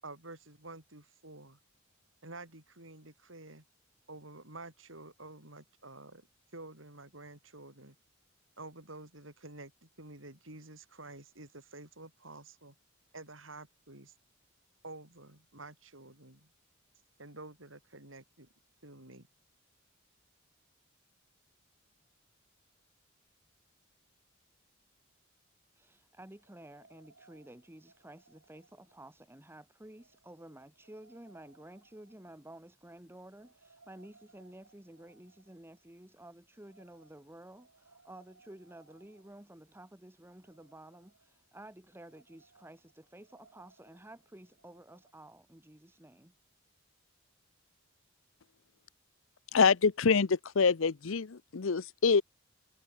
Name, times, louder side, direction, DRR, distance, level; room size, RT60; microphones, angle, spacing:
voice 1, 0.0-1.6 2.2-3.6 4.1-6.3 6.5-8.0 8.6-12.7 13.1-14.1 14.8-16.5 17.2-18.5 18.8-19.3, right 2 dB, 70° right, 7.6 m, -49 dB
voice 2, 25.7-46.3, right 1 dB, 10° right, 1.3 m, -52 dB
sound 1, 26.3-45.3, right 3 dB, 85° right, 6.8 m, -66 dB
voice 3, 49.5-52.2, left 5 dB, 75° left, 0.7 m, -26 dB
head